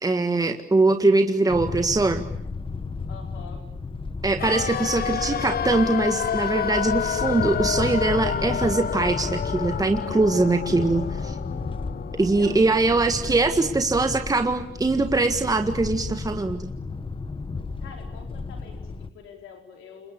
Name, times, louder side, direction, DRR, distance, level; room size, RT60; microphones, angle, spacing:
voice 1, 0.0-2.2 4.2-11.4 12.1-16.7, right 3 dB, 20° right, 7 dB, 1.8 m, -22 dB
sound 1, 1.5-19.1, left 4 dB, 25° left, 1.4 m, -33 dB
voice 2, 3.1-3.6 4.7-5.0 12.3-12.9 17.8-20.1, left 6 dB, 85° left, 3 dB, 5.0 m, -44 dB
sound 2, 4.4-14.3 14.6-14.7, left 8 dB, 50° left, 1.1 m, -30 dB
27.5 x 24.0 x 8.5 m, 0.72 s
cardioid pair, 90°, 20 cm